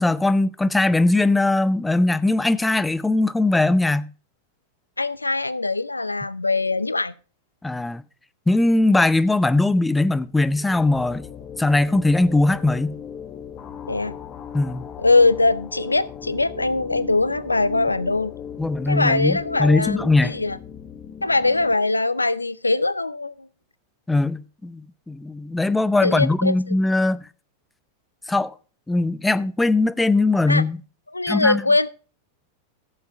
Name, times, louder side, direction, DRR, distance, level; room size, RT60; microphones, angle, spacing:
voice 1, 0.0-4.1 7.6-8.0 8.5-11.3 11.6-13.0 14.5-14.8 18.6-20.4 24.1-27.3 28.3-28.5 28.9-30.8 31.3-31.6, left 2 dB, 5° left, 0.6 m, -20 dB
voice 2, 5.0-7.1 13.9-14.2 15.0-18.3 18.9-20.6 21.2-23.5 26.0-26.8 30.5-30.6 31.1-31.9, left 3 dB, 80° left, 0.4 m, -21 dB
sound 1, 10.2-21.7, left 8 dB, 35° left, 1.2 m, -38 dB
14.5 x 7.1 x 3.8 m
figure-of-eight pair, 90°, 0 cm